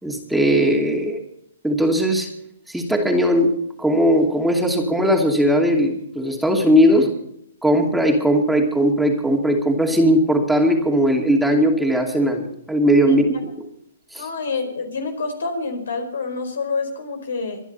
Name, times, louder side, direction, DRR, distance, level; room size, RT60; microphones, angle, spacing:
voice 1, 0.0-1.2 1.6-2.3 2.7-7.1 7.6-13.7 14.1-14.3, equal, ahead, 1 dB, 2.6 m, -18 dB
voice 2, 14.2-17.6, left 4 dB, 75° left, 6 dB, 4.6 m, -27 dB
24.5 x 11.0 x 4.3 m, 0.71 s
hypercardioid pair, 125°, 0 cm